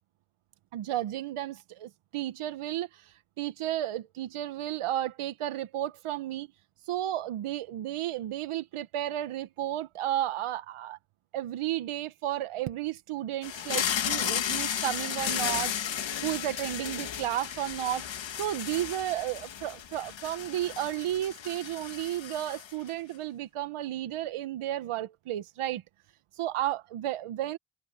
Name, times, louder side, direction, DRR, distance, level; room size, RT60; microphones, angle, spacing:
voice 1, 0.7-6.5 6.9-11.0 11.3-18.1 18.4-25.8 26.4-27.6, right 13 dB, 85° right, 1.3 m, -33 dB
sound 1, 13.4-22.9, left 9 dB, 60° left, 1.8 m, -34 dB
cardioid pair, 70°, 49 cm